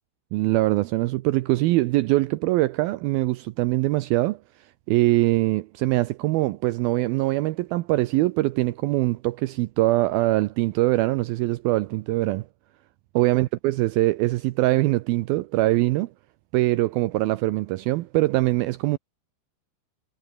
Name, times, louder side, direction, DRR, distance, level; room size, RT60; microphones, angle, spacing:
voice 1, 0.3-4.4 4.9-12.5 13.2-16.1 16.5-19.0, right 18 dB, 90° right, 2.1 m, -23 dB
omnidirectional pair, 5.1 m